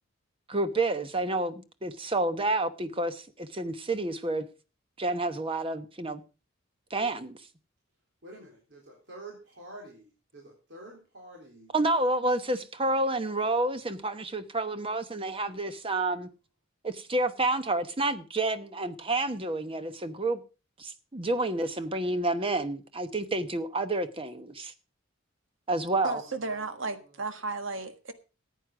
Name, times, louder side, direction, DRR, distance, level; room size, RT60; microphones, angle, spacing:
voice 1, 0.5-4.5 5.0-6.2 6.9-7.4 11.7-16.3 16.8-20.4 20.8-24.7 25.7-26.2, right 2 dB, 30° right, 1.0 m, -29 dB
voice 2, 8.2-11.7 15.5-15.9 25.9-27.5, right 1 dB, 65° right, 3.8 m, -49 dB
voice 3, 26.0-28.1, right 3 dB, 80° right, 1.5 m, -34 dB
14.5 x 9.2 x 4.9 m
head